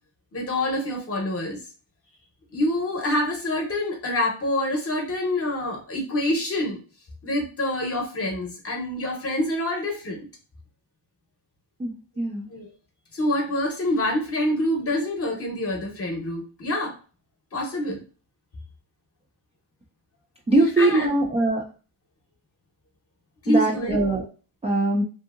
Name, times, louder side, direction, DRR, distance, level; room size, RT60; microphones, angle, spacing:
voice 1, 0.3-1.6 2.5-6.8 7.2-10.2 12.5-12.7 13.1-17.0 17.5-18.0 20.6-21.1 23.4-24.0, left 1 dB, 30° left, 1 dB, 0.8 m, -26 dB
voice 2, 20.5-21.6 23.5-24.2 24.6-25.0, right 2 dB, 15° right, -3 dB, 0.3 m, -21 dB
2.8 x 2.6 x 2.4 m, 0.36 s
cardioid pair, 130°, 50 cm